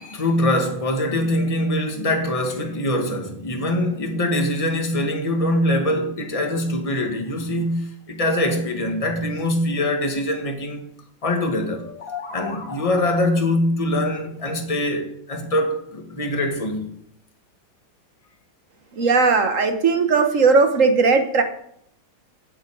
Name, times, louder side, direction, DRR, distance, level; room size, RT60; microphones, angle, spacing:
voice 1, 0.0-10.8 11.2-11.9 12.3-16.9, left 1 dB, 20° left, 1.6 m, -23 dB
sound 1, 11.6-13.5, left 5 dB, 45° left, 1.8 m, -36 dB
voice 2, 19.0-21.4, right 4 dB, 45° right, 1.4 m, -17 dB
8.0 x 7.9 x 8.4 m
omnidirectional pair, 2.1 m